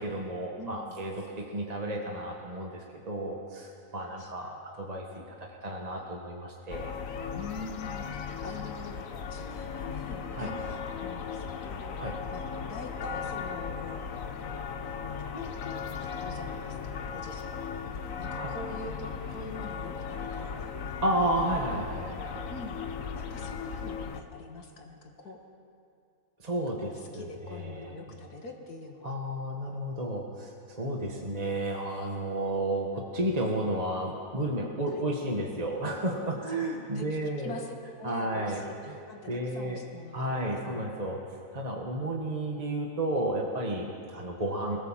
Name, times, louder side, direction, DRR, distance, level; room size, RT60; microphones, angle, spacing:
voice 1, 0.0-6.9 10.3-10.5 12.0-12.2 18.3-18.5 21.0-22.5 26.4-28.0 29.0-37.6 38.0-38.6 39.2-39.8 40.1-41.2 41.5-44.8, right 1 dB, 25° right, 0 dB, 1.7 m, -32 dB
voice 2, 0.6-0.9 4.2-4.5 5.1-5.3 7.3-9.0 9.3-11.9 12.3-14.0 14.4-14.6 15.3-17.8 18.2-21.0 22.5-22.8 23.1-25.4 26.8-29.2 34.9-35.0 36.5-40.9 44.1-44.3, left 3 dB, 90° left, 2 dB, 2.6 m, -44 dB
sound 1, 6.7-24.2, left 6 dB, 65° left, 1.3 m, -37 dB
23.0 x 17.0 x 7.5 m, 2.4 s
omnidirectional pair, 1.6 m